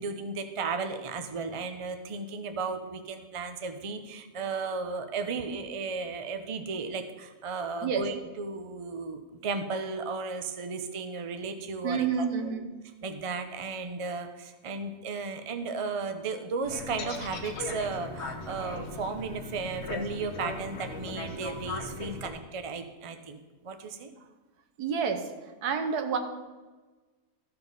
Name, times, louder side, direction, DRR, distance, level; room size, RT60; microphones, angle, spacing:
voice 1, 0.0-12.5 13.0-23.4 23.6-24.1, right 4 dB, 45° right, 7 dB, 0.4 m, -35 dB
voice 2, 11.8-12.7 24.8-25.3 25.6-26.2, right 6 dB, 80° right, 7 dB, 1.4 m, -28 dB
sound 1, 16.6-22.3, left 2 dB, 50° left, 1.2 m, -38 dB
sound 2, 17.0-21.0, left 5 dB, 80° left, 1.5 m, -45 dB
13.5 x 4.6 x 5.4 m, 1.2 s
omnidirectional pair, 1.6 m